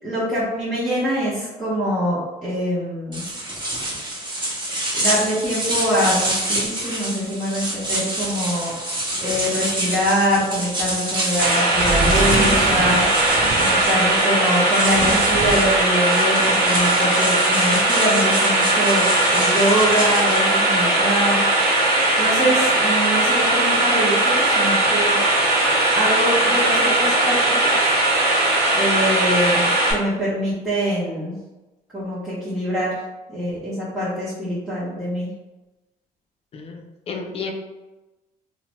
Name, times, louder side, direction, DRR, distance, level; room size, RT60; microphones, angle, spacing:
voice 1, 0.0-3.2 4.9-8.7 9.2-13.0 13.6-21.4 22.2-25.2 25.9-27.4 27.6-27.9 28.7-31.3 31.9-33.0 33.3-35.3, equal, 5° right, -12 dB, 0.9 m, -24 dB
sound 1, 3.1-20.6, right 1 dB, 30° right, 1.0 m, -27 dB
Fan blowing, 11.4-29.9, right 1 dB, 85° right, 0.8 m, -19 dB
sound 2, 11.7-14.3 14.8-15.9, right 3 dB, 50° right, 0.4 m, -26 dB
voice 2, 36.5-37.5, left 4 dB, 40° left, 3 dB, 0.4 m, -32 dB
2.9 x 2.1 x 2.9 m, 1.1 s
cardioid pair, 140°, 16 cm